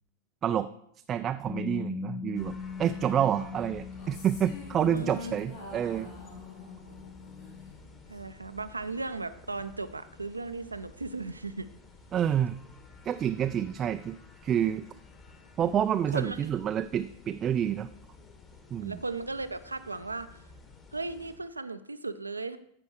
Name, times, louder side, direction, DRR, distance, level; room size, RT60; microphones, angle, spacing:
voice 1, 1.1-6.1 12.1-12.6 13.0-14.2 14.4-14.8 15.6-17.9 18.7-19.0, right 9 dB, 25° right, 9 dB, 0.3 m, -28 dB
Bass guitar, 1.5-7.7, left 6 dB, ahead, 0.8 m, -41 dB
sound 1, 2.3-21.4, left 3 dB, 25° left, 1.7 m, -53 dB
sound 2, 3.9-8.3, left 3 dB, 55° left, 2.9 m, -45 dB
voice 2, 4.9-5.3 8.1-11.7 16.1-16.5 18.8-20.4 20.9-22.6, right 3 dB, 80° right, 12 dB, 0.6 m, -36 dB
14.5 x 5.2 x 4.7 m, 0.73 s
figure-of-eight pair, 90°, 0 cm